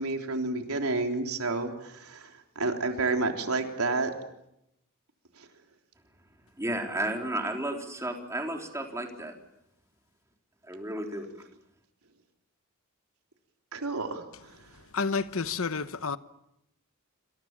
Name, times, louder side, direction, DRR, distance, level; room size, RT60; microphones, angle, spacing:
voice 1, 0.0-4.1 5.4-5.5 13.7-14.5, right 3 dB, 90° right, 3.6 m, -30 dB
voice 2, 6.6-9.3 10.6-11.3, right 1 dB, 15° right, 3.9 m, -33 dB
voice 3, 14.9-16.2, left 4 dB, 70° left, 1.1 m, -30 dB
27.5 x 26.0 x 7.5 m
head